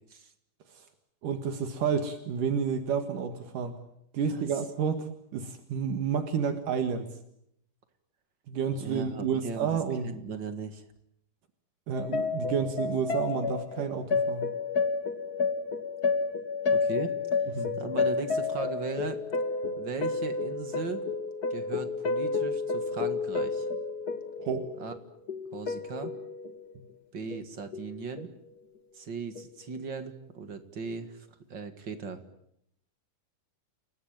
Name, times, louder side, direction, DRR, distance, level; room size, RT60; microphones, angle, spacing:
voice 1, 1.2-3.7 4.1-7.0 8.5-10.1 11.9-14.5 17.6-17.7 24.4-24.7, right 6 dB, 70° right, 7 dB, 3.3 m, -30 dB
voice 2, 8.8-10.8 16.7-19.2 19.8-21.1 21.5-23.7 24.8-24.9 25.5-26.1 27.1-28.3 28.9-31.2 31.5-32.2, right 5 dB, 40° right, 9 dB, 2.1 m, -38 dB
sound 1, 11.9-26.8 27.3-27.9 28.2-28.4 29.3-29.5, left 4 dB, 35° left, 1.8 m, -31 dB
29.5 x 18.5 x 9.0 m, 0.76 s
omnidirectional pair, 3.9 m